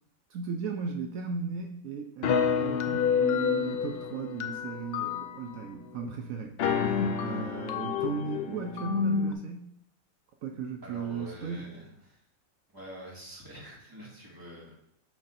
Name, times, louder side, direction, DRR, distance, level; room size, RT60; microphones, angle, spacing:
voice 1, 0.3-9.7 10.4-11.7, right 5 dB, 75° right, 3 dB, 1.0 m, -36 dB
sound 1, 2.2-5.6 6.0-6.1 6.4-9.3, left 7 dB, 60° left, 0.6 m, -29 dB
voice 2, 10.8-12.2 12.7-14.7, right 1 dB, 15° right, -6 dB, 2.1 m, -46 dB
12.0 x 4.1 x 2.6 m, 0.73 s
omnidirectional pair, 1.5 m